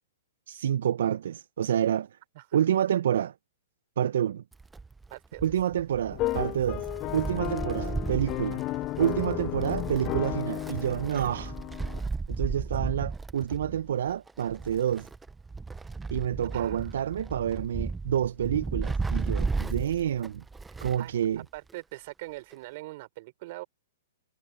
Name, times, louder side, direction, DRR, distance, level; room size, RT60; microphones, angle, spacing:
voice 1, 0.5-2.1 2.5-3.3 4.0-4.4 5.4-6.9 7.1-8.6 9.0-11.5 12.3-15.1 16.1-20.4 20.8-21.4, right 10 dB, 70° right, 0.6 m, -28 dB
Wind, 4.5-21.1 21.4-21.5 22.5-22.6, right 4 dB, 10° right, 0.7 m, -35 dB
voice 2, 5.1-5.4 16.5-17.3 21.0-21.1 21.5-23.6, right 20 dB, 50° right, 4.5 m, -42 dB
sound 1, 6.1-12.0, left 18 dB, 35° left, 0.4 m, -34 dB
hypercardioid pair, 130°, 0 cm